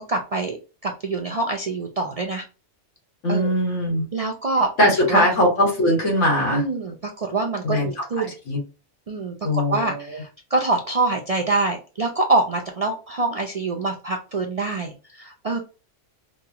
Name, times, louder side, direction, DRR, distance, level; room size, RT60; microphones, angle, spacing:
voice 1, 0.0-2.4 3.3-3.5 4.1-4.7 5.1-5.3 6.5-8.3 9.1-15.6, right 3 dB, 50° right, 1 dB, 0.4 m, -25 dB
voice 2, 3.2-4.1 4.8-6.6 7.6-8.6 9.4-10.2, left 1 dB, 85° left, -1 dB, 2.0 m, -21 dB
5.1 x 2.2 x 2.8 m, 0.33 s
omnidirectional pair, 1.2 m